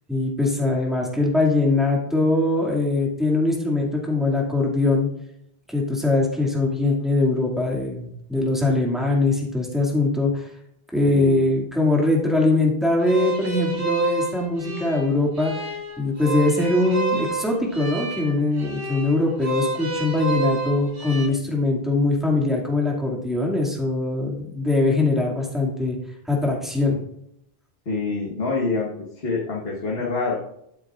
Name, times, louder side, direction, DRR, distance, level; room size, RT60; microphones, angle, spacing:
voice 1, 0.1-5.1 5.7-10.5 10.9-15.5 16.0-26.0 26.3-27.0, left 2 dB, ahead, -2 dB, 2.2 m, -22 dB
voice 2, 11.0-11.4 27.8-28.9 29.2-30.4, left 3 dB, 70° left, -3 dB, 1.6 m, -26 dB
sound 1, 13.0-21.3, right 3 dB, 60° right, 1.9 m, -29 dB
12.0 x 8.6 x 2.5 m, 0.75 s
omnidirectional pair, 1.1 m